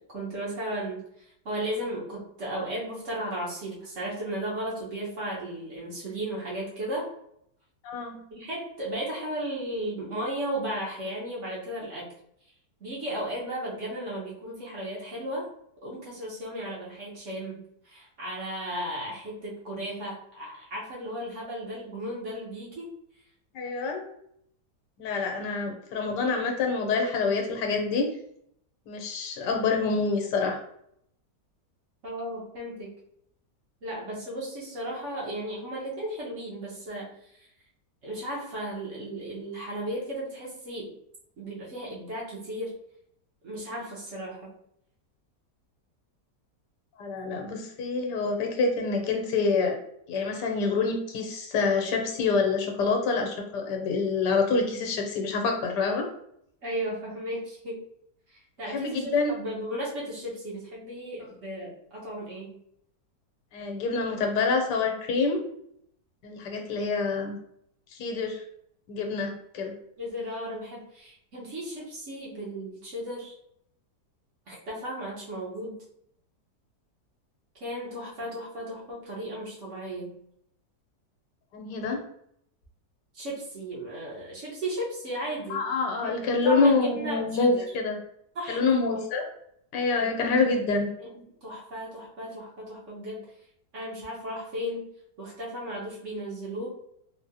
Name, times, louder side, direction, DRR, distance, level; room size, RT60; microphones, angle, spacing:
voice 1, 0.1-7.1 8.3-12.1 12.8-15.5 15.8-22.9 32.0-32.9 33.8-37.4 38.0-40.9 41.4-42.7 43.4-44.5 56.6-57.8 58.3-62.6 70.0-73.4 74.5-75.8 77.6-80.1 83.1-85.6 86.0-87.7 88.3-89.1 90.0-90.3 91.0-93.3 93.7-94.9 95.2-96.7, right 1 dB, 50° right, -5 dB, 1.1 m, -35 dB
voice 2, 7.8-8.2 23.5-24.0 25.0-28.1 28.9-30.6 47.0-49.8 50.1-56.1 58.7-59.4 63.5-65.4 66.2-67.4 67.9-68.4 68.9-69.7 81.5-82.0 85.5-88.0 88.5-89.2 89.7-90.9, left 4 dB, 90° left, 3 dB, 1.3 m, -26 dB
3.6 x 2.0 x 2.7 m, 0.72 s
omnidirectional pair, 1.8 m